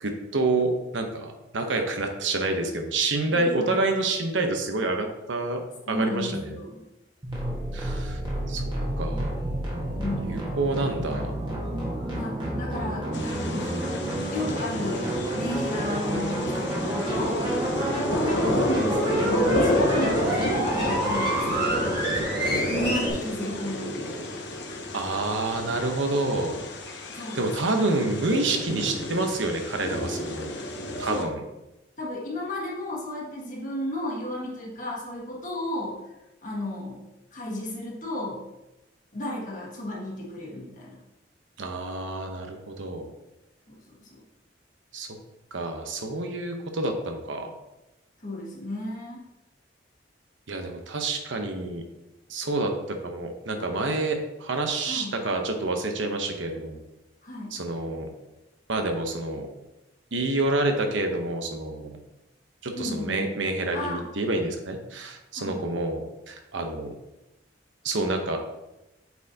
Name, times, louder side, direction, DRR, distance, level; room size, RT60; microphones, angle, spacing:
voice 1, 0.0-6.6 7.7-8.2 8.5-8.7 9.0-9.4 10.2-11.3 24.9-26.6 27.1-30.5 31.0-31.4 41.6-43.1 44.9-45.1 45.5-47.5 50.5-51.8 52.3-56.8 57.5-58.1 58.7-59.5 60.1-62.0 62.6-66.9 67.8-68.4, right 2 dB, 85° right, 4 dB, 0.9 m, -28 dB
voice 2, 3.3-3.9 5.9-6.8 10.0-10.3 12.1-17.5 18.4-22.0 22.7-24.4 24.7-24.8 27.1-27.8 31.0-31.3 32.0-36.0 36.4-37.0 37.3-38.4 39.1-41.0 43.7-44.1 48.2-49.2 54.8-55.2 57.2-57.6 62.7-63.4 63.7-64.0 65.3-65.6, left 1 dB, 45° left, -3 dB, 1.5 m, -33 dB
sound 1, 7.2-23.1, right 1 dB, 25° right, 1.4 m, -28 dB
sound 2, 13.1-31.2, left 1 dB, 70° left, 0.8 m, -31 dB
8.1 x 4.4 x 2.8 m, 0.97 s
head